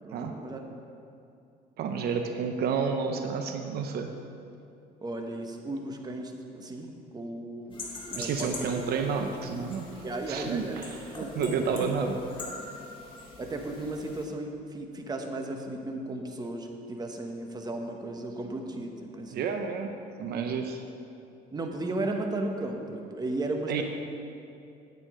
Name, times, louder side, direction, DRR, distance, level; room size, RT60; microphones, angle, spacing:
voice 1, 0.0-0.6 5.0-7.8 8.1-8.5 10.0-10.8 11.1-11.9 13.4-19.4 21.5-23.8, right 2 dB, 25° right, 3 dB, 1.1 m, -35 dB
voice 2, 1.8-4.1 8.2-9.9 10.3-12.2 19.3-19.9 20.2-20.8 23.7-23.8, right 6 dB, 70° right, 5 dB, 0.8 m, -30 dB
sound 1, 7.7-14.3, left 2 dB, 30° left, 2.3 m, -42 dB
9.4 x 9.1 x 4.9 m, 2.6 s
cardioid pair, 110°, 17 cm